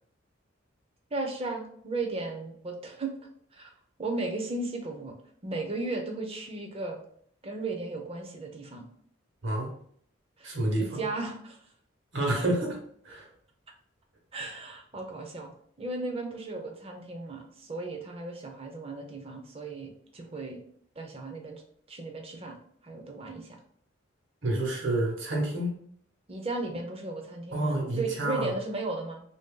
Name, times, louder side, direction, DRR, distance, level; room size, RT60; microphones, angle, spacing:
voice 1, 1.1-3.1 3.5-3.7 4.0-5.1 5.4-7.0 7.4-8.9 10.4-11.7 14.3-15.5 15.8-20.6 21.0-21.6 21.9-22.6 22.8-23.6 26.3-29.2, right 2 dB, 30° right, 2 dB, 0.6 m, -35 dB
voice 2, 9.4-9.7 10.4-11.0 12.1-12.8 13.0-13.3 24.4-25.7 27.5-28.5, right 1 dB, 65° right, -1 dB, 1.2 m, -29 dB
3.0 x 2.7 x 3.7 m, 0.62 s
head